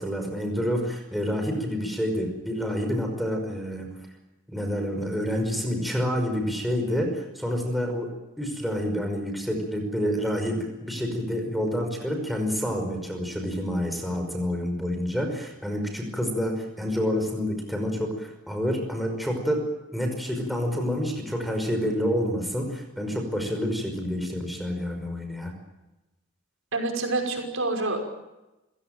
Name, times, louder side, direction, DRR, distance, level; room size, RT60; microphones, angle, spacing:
voice 1, 0.0-3.9 4.5-8.1 8.4-19.6 19.9-25.5, equal, ahead, 3 dB, 5.4 m, -28 dB
voice 2, 26.7-28.1, right 2 dB, 75° right, 3 dB, 5.8 m, -27 dB
29.5 x 16.5 x 9.1 m, 1.0 s
head